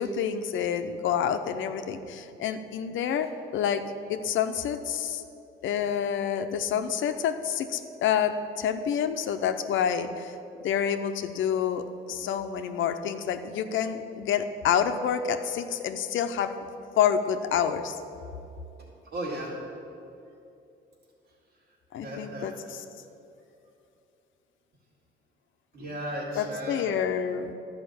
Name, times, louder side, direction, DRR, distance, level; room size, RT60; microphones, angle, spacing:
voice 1, 0.0-3.8 4.1-5.2 5.6-10.4 10.6-16.6 17.0-18.0 21.9-22.8 26.3-27.5, left 8 dB, 75° left, 9 dB, 0.7 m, -28 dB
voice 2, 19.1-19.5 22.0-22.5 25.7-26.8, right 1 dB, 65° right, -7 dB, 2.3 m, -35 dB
11.5 x 5.1 x 8.6 m, 2.7 s
cardioid pair, 90°, 20 cm